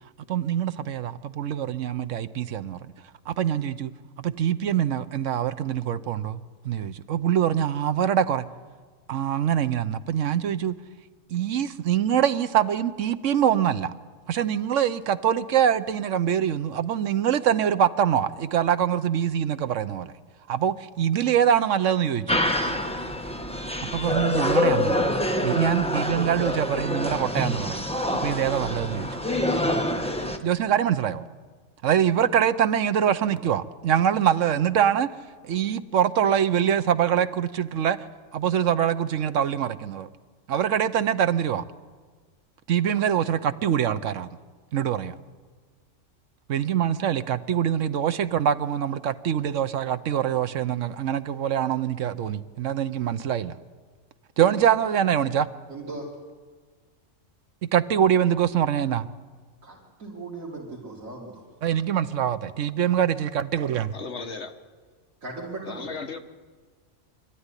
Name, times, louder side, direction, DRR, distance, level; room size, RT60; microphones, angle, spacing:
voice 1, 0.3-2.8 3.3-3.9 4.2-6.4 6.6-8.5 9.1-10.7 11.3-13.9 14.3-20.1 20.5-22.4 23.8-25.1 25.4-27.8 28.2-29.1 30.4-31.2 31.8-35.1 35.4-38.0 38.3-40.1 40.5-41.6 42.7-44.3 44.7-45.1 46.5-53.5 54.4-55.5 57.6-59.1 61.6-63.9, right 9 dB, 70° right, 1.2 m, -24 dB
sound 1, 22.3-30.4, left 1 dB, 5° left, 1.1 m, -26 dB
voice 2, 55.7-56.1 59.6-61.4 65.2-66.0, right 2 dB, 90° right, 3.2 m, -38 dB
voice 3, 63.6-64.5 65.6-66.2, left 4 dB, 60° left, 1.8 m, -36 dB
25.0 x 13.0 x 9.9 m
omnidirectional pair, 1.3 m